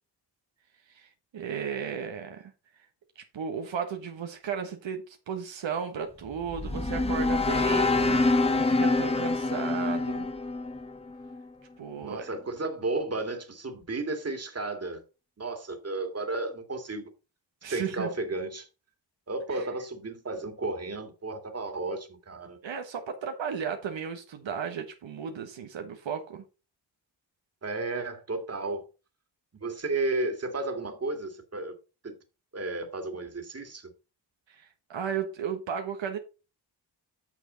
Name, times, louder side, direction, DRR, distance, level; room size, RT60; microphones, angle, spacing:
voice 1, 0.9-2.5 3.2-7.9 8.6-10.3 11.8-12.3 17.6-18.1 19.5-19.6 22.6-26.4 34.5-36.2, right 7 dB, 80° right, 1.3 m, -35 dB
sound 1, 6.2-11.5, left 2 dB, 15° left, 1.1 m, -26 dB
voice 2, 7.6-8.4 12.0-15.0 15.4-17.1 17.7-18.7 19.3-22.6 27.6-28.8 29.6-31.8 32.0-32.2 32.5-33.9, right 2 dB, 35° right, 2.2 m, -33 dB
8.9 x 6.5 x 3.9 m
cardioid pair, 70°, 44 cm